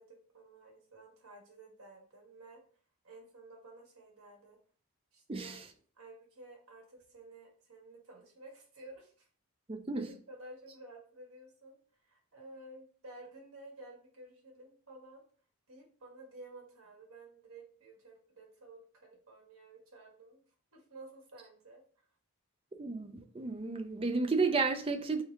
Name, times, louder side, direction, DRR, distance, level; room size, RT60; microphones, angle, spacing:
voice 1, 0.0-2.6 3.0-4.6 5.1-5.6 6.0-9.3 9.9-11.8 12.0-15.2 15.7-20.4 20.7-22.0, right 2 dB, 75° right, 1.4 m, -53 dB
voice 2, 5.3-5.7 9.7-10.1 22.7-25.2, right 4 dB, 25° right, 0.4 m, -32 dB
3.5 x 2.7 x 4.4 m
head